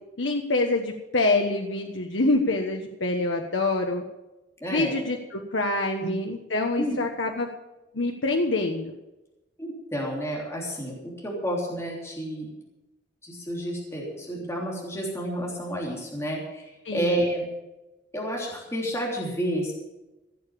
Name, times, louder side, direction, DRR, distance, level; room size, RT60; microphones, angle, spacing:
voice 1, 0.2-4.0 4.7-7.5 7.9-8.9 16.8-17.2, left 2 dB, 90° left, 2 dB, 1.2 m, -26 dB
voice 2, 4.6-4.9 6.0-6.1 6.8-7.0 9.6-12.5 13.2-17.5 18.1-19.7, equal, 15° left, -3 dB, 3.2 m, -30 dB
17.0 x 7.1 x 8.4 m, 1.0 s
head